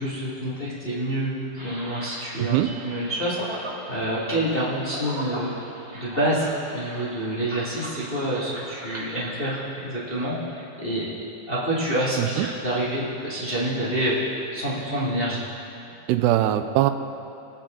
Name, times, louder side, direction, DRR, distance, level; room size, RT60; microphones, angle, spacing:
voice 1, 0.0-5.5 5.9-11.1 11.5-15.4, right 1 dB, 20° left, -9 dB, 1.5 m, -27 dB
sound 1, 1.6-9.3, right 1 dB, 15° right, 1.2 m, -39 dB
voice 2, 2.4-2.7 12.2-12.5 16.1-16.9, right 13 dB, 85° right, 8 dB, 2.7 m, -21 dB
24.0 x 9.0 x 3.9 m, 2.7 s
omnidirectional pair, 4.8 m